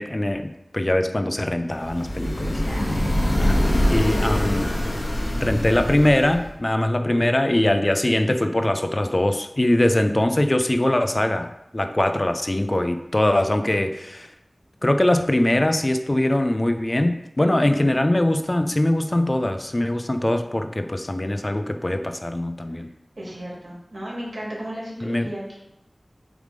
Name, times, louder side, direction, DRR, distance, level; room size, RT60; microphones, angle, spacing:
voice 1, 0.0-2.6 3.3-3.6 3.9-4.7 5.3-14.3 14.8-22.9 25.0-25.3, left 1 dB, 35° left, 7 dB, 0.5 m, -22 dB
sound 1, 1.8-6.5, equal, 85° left, 1.5 m, -23 dB
voice 2, 2.5-3.0 3.8-4.3 17.4-17.9 22.7-22.8 23.2-25.6, equal, 70° right, -4 dB, 2.3 m, -35 dB
6.5 x 3.6 x 5.1 m, 0.87 s
wide cardioid pair, 50°, 0 cm